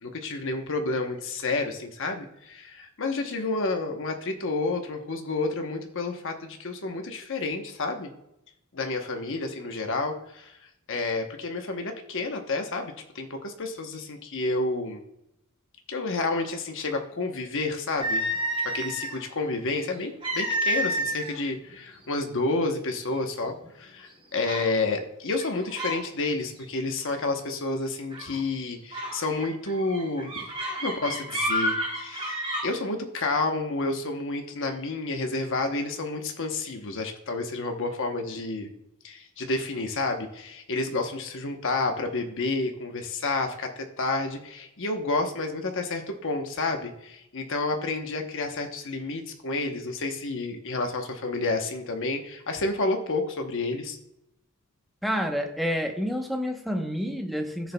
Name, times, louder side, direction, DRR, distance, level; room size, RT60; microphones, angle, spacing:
voice 1, 0.0-8.1 8.7-10.6 10.9-15.0 15.9-18.2 18.6-30.5 30.8-38.7 39.0-54.0, left 3 dB, 60° left, 4 dB, 1.0 m, -30 dB
sound 1, 18.0-19.2 20.2-21.4 21.7-21.9 22.6-22.7 23.2-23.7 24.4-24.7 25.3-26.0 26.3-26.6 28.1-28.4 28.9-32.6, right 1 dB, 25° right, 3.7 m, -30 dB
voice 2, 55.0-57.7, equal, ahead, 3 dB, 0.9 m, -29 dB
16.0 x 6.9 x 2.3 m, 0.84 s
head